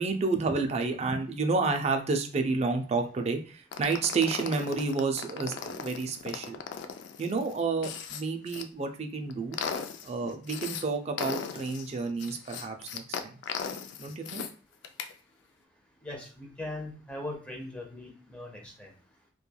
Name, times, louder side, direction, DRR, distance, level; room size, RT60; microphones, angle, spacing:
voice 1, 0.0-6.6 7.2-9.6 10.0-13.4 14.0-14.4, right 4 dB, 35° right, 5 dB, 0.4 m, -30 dB
sound 1, 3.7-8.6 9.1-10.8 11.2-14.5 14.8-15.1, left 6 dB, 85° left, 0.3 m, -37 dB
voice 2, 16.0-18.9, left 2 dB, 5° left, 0 dB, 0.6 m, -40 dB
3.0 x 2.2 x 2.3 m, 0.40 s
head